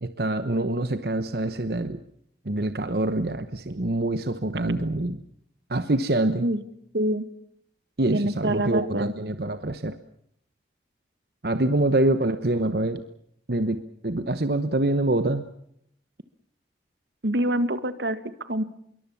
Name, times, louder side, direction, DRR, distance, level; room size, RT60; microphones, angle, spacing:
voice 1, 0.0-2.0 2.4-5.2 5.7-6.4 8.0-10.0 11.4-13.0 13.5-15.5, right 2 dB, 60° right, 10 dB, 1.1 m, -25 dB
voice 2, 6.9-7.3 8.1-9.1 17.2-18.6, right 1 dB, 80° right, 12 dB, 1.7 m, -26 dB
25.5 x 23.0 x 7.1 m, 0.72 s
head